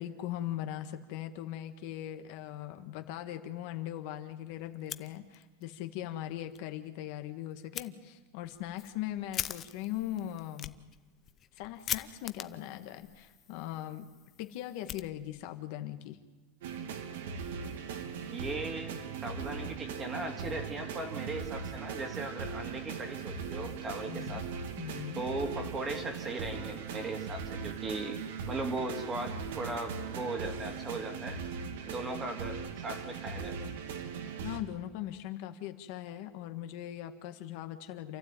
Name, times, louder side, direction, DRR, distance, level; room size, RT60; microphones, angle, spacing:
voice 1, 0.0-10.8 11.5-14.1 14.4-16.2 24.1-24.4 24.8-25.2 34.4-38.2, left 12 dB, 50° left, 7 dB, 1.6 m, -40 dB
Fire, 4.7-5.7 6.0-6.1 6.5-6.6 7.7-7.9 8.4-15.6, left 10 dB, 25° left, 0.7 m, -42 dB
sound 1, 16.6-34.6, right 6 dB, 80° right, 2.7 m, -39 dB
voice 2, 18.3-24.5 25.1-28.2 28.5-31.4 31.9-33.7, right 2 dB, 15° right, 5 dB, 2.3 m, -38 dB
28.5 x 15.0 x 9.1 m, 1.2 s
supercardioid pair, 175°, 0 cm